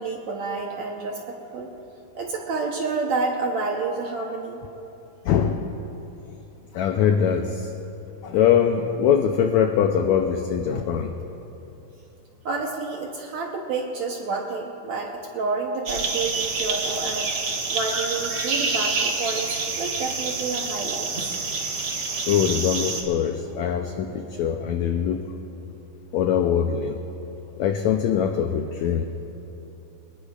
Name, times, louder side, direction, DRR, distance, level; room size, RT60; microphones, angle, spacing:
voice 1, 0.0-1.7 2.2-4.6 12.5-21.1, right 3 dB, 65° right, 0 dB, 1.9 m, -29 dB
voice 2, 5.2-5.7 6.7-7.7 8.2-11.1 22.1-25.3 26.1-27.0 27.6-29.0, left 8 dB, 80° left, 5 dB, 1.6 m, -22 dB
sound 1, 15.9-23.0, right 4 dB, 50° right, 1.8 m, -27 dB
23.5 x 20.0 x 2.4 m, 2.9 s
omnidirectional pair, 3.9 m